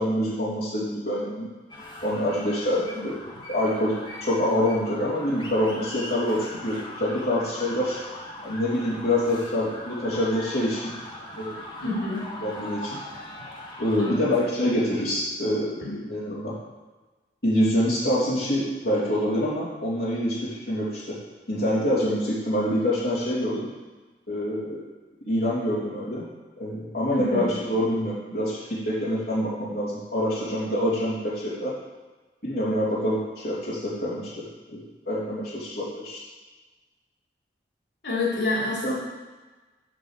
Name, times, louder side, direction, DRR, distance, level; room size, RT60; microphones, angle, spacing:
voice 1, 0.0-1.5 2.0-3.1 3.5-3.9 4.2-8.0 8.4-10.9 11.4-11.5 12.4-13.0 13.8-16.5 17.4-21.2 21.5-23.7 24.3-24.8 25.2-26.2 26.6-31.8 32.4-33.2 33.4-34.4 34.7-36.2 38.8-38.9, left 1 dB, 60° left, -8 dB, 3.0 m, -26 dB
sound 1, 1.7-14.2, left 1 dB, 25° left, 1.2 m, -40 dB
voice 2, 11.8-12.3 14.0-14.2 15.8-16.0 27.1-27.5 38.0-38.9, left 2 dB, 90° left, -5 dB, 3.1 m, -27 dB
8.3 x 5.5 x 7.3 m, 1.2 s
head